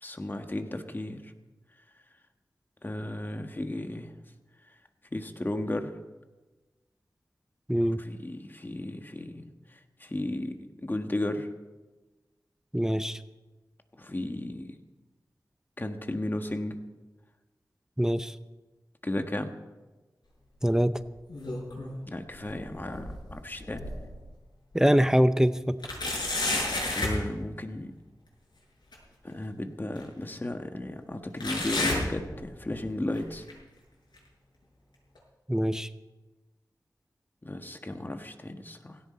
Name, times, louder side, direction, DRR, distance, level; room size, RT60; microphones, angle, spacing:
voice 1, 0.0-1.3 2.8-4.1 5.1-5.9 8.0-11.5 13.9-14.8 15.8-16.8 19.0-19.6 22.0-23.9 26.9-27.9 29.2-33.4 37.4-39.0, left 1 dB, 25° left, 6 dB, 1.4 m, -34 dB
voice 2, 7.7-8.0 12.7-13.2 18.0-18.4 20.6-21.0 24.7-25.8 35.5-35.9, equal, 5° right, 12 dB, 0.6 m, -24 dB
sound 1, 21.0-22.0 22.3-24.2 24.7-24.8 25.8-27.2 28.9-29.0 29.9-30.0 31.4-32.8 33.1-33.5 34.2-34.3 35.1-35.2, left 2 dB, 85° left, 7.0 m, -32 dB
17.0 x 17.0 x 4.3 m, 1.2 s
wide cardioid pair, 90°, 7 cm